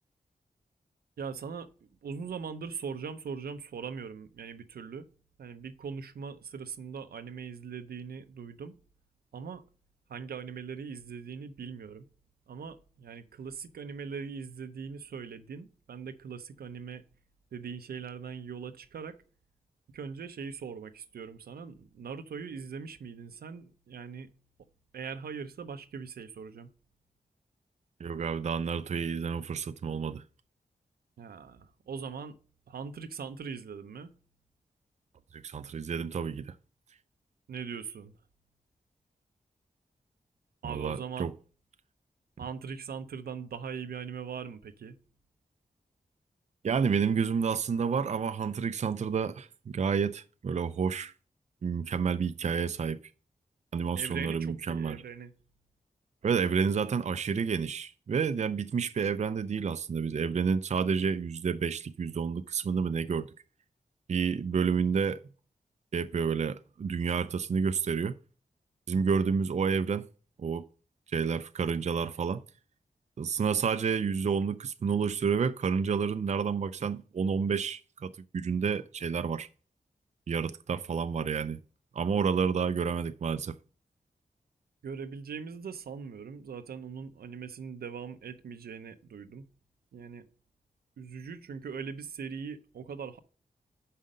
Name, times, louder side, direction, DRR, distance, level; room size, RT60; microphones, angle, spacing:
voice 1, 1.2-1.7 2.0-5.1 5.4-8.7 9.3-9.6 10.1-12.1 12.5-17.0 17.5-19.2 19.9-24.3 24.9-26.7 31.2-32.4 32.7-34.1 37.5-38.1 40.6-41.3 42.4-45.0 54.0-55.3 84.8-89.4 89.9-90.3 91.0-93.2, right 6 dB, 90° right, 0.7 m, -40 dB
voice 2, 28.0-30.2 35.3-36.5 40.6-41.3 46.6-51.1 51.6-53.0 53.7-55.0 56.2-63.3 64.1-65.2 65.9-68.2 68.9-70.1 70.4-70.7 71.1-72.4 73.2-79.5 80.3-81.6 81.9-83.6, right 6 dB, 50° right, 0.5 m, -30 dB
6.3 x 5.7 x 5.1 m
cardioid pair, 70°, 15 cm